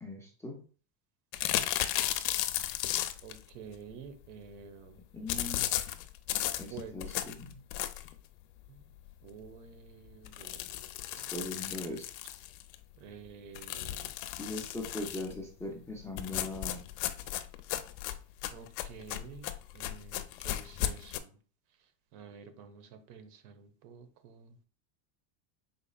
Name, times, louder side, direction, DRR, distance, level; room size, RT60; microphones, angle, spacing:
voice 1, 0.0-0.6 5.1-5.7 6.6-7.5 11.1-12.1 14.4-16.8, left 2 dB, 5° left, 0 dB, 0.4 m, -40 dB
sound 1, 1.3-3.4 5.3-8.2 8.7-8.8 9.1-9.2 9.5-9.6 10.2-12.8 13.6-15.3 16.2-21.2, left 13 dB, 85° left, 0.6 m, -35 dB
voice 2, 3.2-5.0 6.7-7.1 8.7-8.8 9.2-10.6 11.2-11.3 13.0-14.1 18.5-21.4 22.1-24.6, right 7 dB, 75° right, 9 dB, 1.0 m, -49 dB
5.3 x 4.0 x 2.3 m, 0.40 s
cardioid pair, 140°, 48 cm